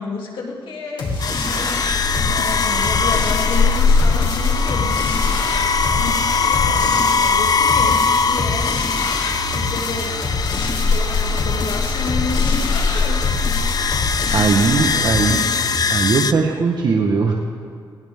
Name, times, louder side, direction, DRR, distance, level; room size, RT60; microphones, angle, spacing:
voice 1, 0.0-1.8 2.1-5.0 5.5-8.8 9.4-10.2 10.5-10.6 10.9-13.2 14.6-15.1, left 4 dB, 90° left, -2 dB, 2.9 m, -31 dB
sound 1, 1.0-15.8, left 2 dB, 70° left, 3.0 m, -26 dB
sound 2, 1.2-16.3, left 5 dB, 50° left, 0.6 m, -20 dB
voice 2, 14.3-15.5 15.9-17.3, right 4 dB, 60° right, 1 dB, 1.2 m, -19 dB
18.5 x 18.0 x 3.6 m, 2.1 s
cardioid pair, 105°, 8 cm